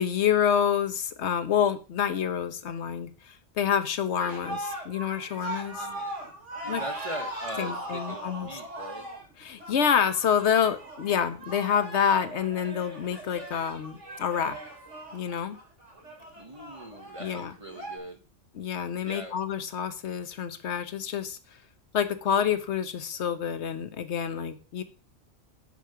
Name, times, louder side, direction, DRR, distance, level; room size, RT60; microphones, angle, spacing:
voice 1, 0.0-5.9 6.7-6.8 7.6-8.5 9.4-14.5 15.1-15.6 17.2-17.5 18.5-21.4 21.9-24.8, left 8 dB, 70° left, 1.2 m, -27 dB
sound 1, 4.2-18.0, right 1 dB, 85° right, 3.3 m, -39 dB
voice 2, 5.7-6.1 6.6-9.1 16.3-18.2 19.0-19.4, right 1 dB, 30° right, 1.1 m, -41 dB
7.6 x 5.5 x 6.7 m
omnidirectional pair, 1.2 m